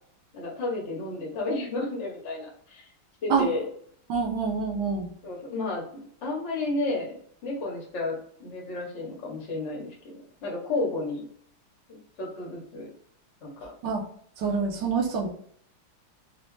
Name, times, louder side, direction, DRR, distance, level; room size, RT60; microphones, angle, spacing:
voice 1, 0.3-2.9 3.2-3.6 5.2-5.9 6.2-7.1 7.4-11.2 11.9-12.9 13.4-13.7, left 2 dB, 65° left, -1 dB, 0.7 m, -32 dB
voice 2, 4.1-5.1 13.8-14.0 14.4-15.3, right 5 dB, 70° right, 1 dB, 1.1 m, -26 dB
4.1 x 2.1 x 3.1 m, 0.63 s
omnidirectional pair, 2.3 m